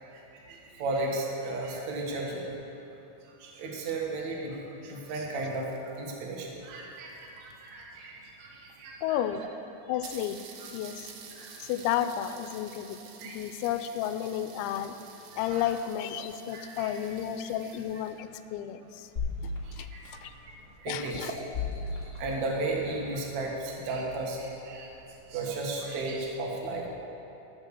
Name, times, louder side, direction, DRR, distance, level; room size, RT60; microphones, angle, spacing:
voice 1, 0.0-2.6 3.4-9.2 11.3-11.6 13.2-13.4 15.3-15.6 16.5-16.9 17.4-17.5 19.6-20.2 20.5-20.6 20.8-21.3 22.2-24.9 25.3-26.9, right 2 dB, 60° right, -1 dB, 2.1 m, -35 dB
sound 1, 5.2-7.8 8.7-8.8 9.0-9.1 9.5-9.6 10.0-18.2, right 6 dB, 80° right, 3.1 m, -50 dB
voice 2, 9.0-9.5 9.9-10.4 10.7-11.1 11.6-13.0 13.3-15.0 15.4-19.1 19.8-19.9 20.2-20.3 20.9-21.4, left 10 dB, 90° left, 10 dB, 2.9 m, -32 dB
sound 2, 19.1-20.4 20.9-23.1 23.7-23.8, left 4 dB, 70° left, 0.8 m, -36 dB
13.5 x 7.2 x 6.8 m, 3.0 s
omnidirectional pair, 5.2 m